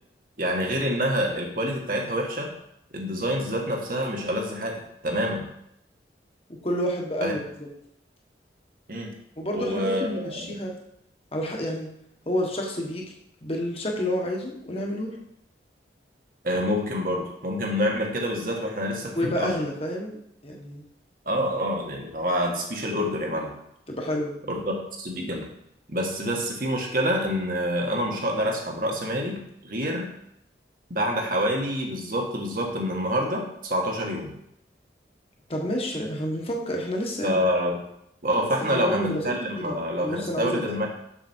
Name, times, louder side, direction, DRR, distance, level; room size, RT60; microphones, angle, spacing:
voice 1, 0.4-2.5 2.9-5.5 7.2-7.3 8.9-9.1 9.5-10.6 16.4-19.5 21.2-23.5 24.5-25.5 25.9-30.1 30.9-34.3 37.2-37.8 38.2-40.9, equal, 50° right, 0 dB, 1.6 m, -27 dB
voice 2, 6.6-7.4 9.4-10.7 11.3-11.9 12.2-13.1 13.4-15.2 19.2-20.2 20.4-20.8 23.9-24.3 35.5-37.4 38.4-39.2 39.6-40.6, equal, 35° left, 0 dB, 1.4 m, -29 dB
7.1 x 6.8 x 4.5 m, 0.75 s
head